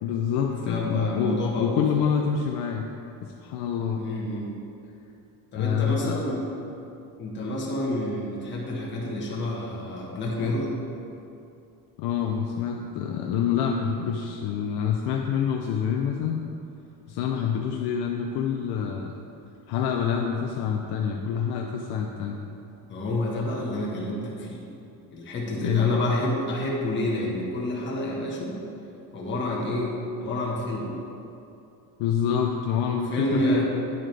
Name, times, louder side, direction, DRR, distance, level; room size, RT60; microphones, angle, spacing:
voice 1, 0.0-2.9 3.2-4.0 5.6-6.2 12.0-16.4 17.1-19.1 19.7-22.4 25.6-25.9 32.0-33.6, left 7 dB, 75° left, 1 dB, 0.7 m, -26 dB
voice 2, 0.6-1.8 4.0-4.5 5.5-6.4 7.2-10.7 22.9-24.6 25.1-28.5 29.1-29.9 30.2-30.9 33.1-33.6, left 1 dB, 30° left, -4 dB, 1.5 m, -28 dB
10.0 x 7.6 x 3.4 m, 2.7 s
cardioid pair, 160°, 39 cm